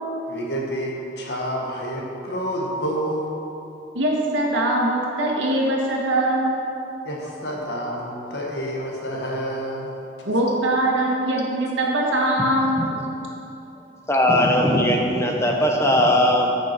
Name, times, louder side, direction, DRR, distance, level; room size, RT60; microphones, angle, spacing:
voice 1, 0.3-3.4 7.0-9.9, equal, 65° left, -2 dB, 1.7 m, -28 dB
voice 2, 3.9-6.6 10.2-12.9, right 1 dB, 90° right, -2 dB, 1.9 m, -22 dB
voice 3, 14.1-16.5, left 1 dB, 15° left, 1 dB, 0.9 m, -19 dB
14.0 x 6.2 x 4.5 m, 2.9 s
head